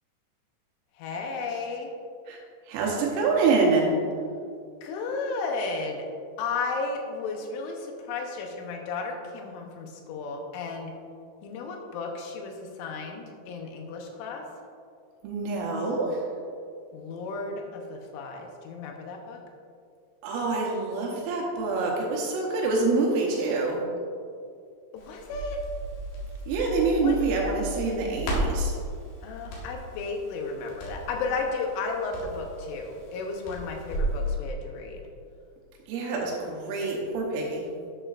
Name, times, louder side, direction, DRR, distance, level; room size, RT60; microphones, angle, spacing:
voice 1, 1.0-1.9 4.8-6.1 6.4-10.9 11.4-14.4 16.9-19.4 24.9-25.6 27.0-27.1 29.2-35.0, left 4 dB, 75° left, 2 dB, 3.1 m, -33 dB
voice 2, 2.7-3.9 15.2-16.2 20.2-23.9 26.5-28.8 35.9-37.7, right 3 dB, 80° right, -1 dB, 3.6 m, -26 dB
Crackle, 25.0-34.2, right 1 dB, 60° left, 3.1 m, -34 dB
11.0 x 8.9 x 2.5 m, 2.3 s
omnidirectional pair, 6.0 m